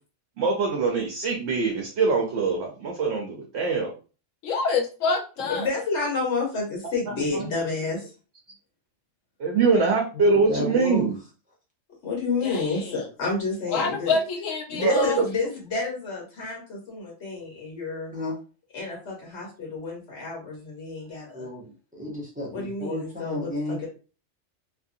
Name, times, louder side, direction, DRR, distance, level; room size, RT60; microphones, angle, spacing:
voice 1, 0.4-3.9 7.3-7.5 9.4-11.1 14.8-15.2, right 4 dB, 65° right, 0 dB, 0.9 m, -23 dB
voice 2, 4.4-5.7 12.4-13.0 13.7-15.2, left 4 dB, 85° left, 4 dB, 1.0 m, -27 dB
voice 3, 5.5-8.1 12.0-14.2 14.7-18.1 18.7-21.5 22.5-23.9, left 3 dB, 65° left, -3 dB, 1.6 m, -30 dB
voice 4, 10.5-11.1 18.1-18.4 21.3-23.8, left 1 dB, 10° right, -5 dB, 0.7 m, -32 dB
2.9 x 2.4 x 2.6 m, 0.35 s
omnidirectional pair, 1.3 m